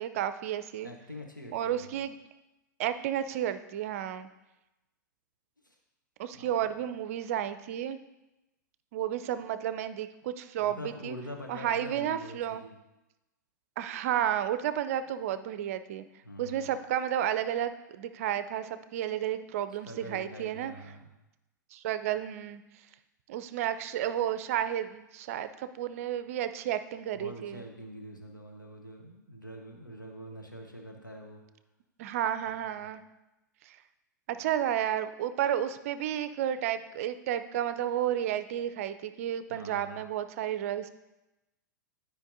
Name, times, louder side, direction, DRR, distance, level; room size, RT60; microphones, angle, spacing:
voice 1, 0.0-0.9 1.5-2.1 2.8-4.3 6.2-8.0 8.9-11.2 11.5-12.6 13.8-16.0 16.4-20.7 21.7-22.6 23.3-27.6 32.0-33.0 33.7-33.8 34.3-40.9, right 10 dB, 45° right, 12 dB, 0.5 m, -32 dB
voice 2, 0.8-2.0 5.6-5.8 6.3-6.7 10.6-12.8 16.2-16.7 19.9-21.1 27.1-31.4 39.5-40.0, equal, 90° left, 1 dB, 1.0 m, -45 dB
12.0 x 5.1 x 2.7 m, 0.98 s
figure-of-eight pair, 95°, 10 cm